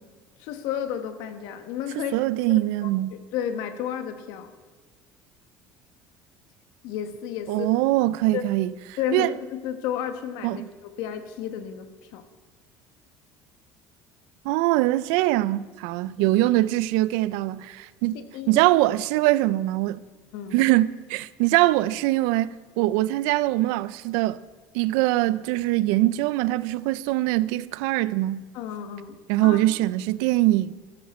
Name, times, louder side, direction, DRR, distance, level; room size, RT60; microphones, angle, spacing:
voice 1, 0.4-2.1 2.5-4.5 6.8-7.7 8.3-8.5 9.0-12.2 16.2-16.3 18.1-18.6 20.3-20.7 28.5-29.6, left 9 dB, 70° left, 1.3 m, -32 dB
voice 2, 2.1-3.2 7.5-8.7 9.1-9.3 10.4-10.7 14.4-18.2 18.5-20.0 20.5-24.4 24.7-28.4 29.3-30.7, right 17 dB, 85° right, 0.5 m, -22 dB
14.0 x 13.0 x 4.3 m
cardioid pair, 170°, 7 cm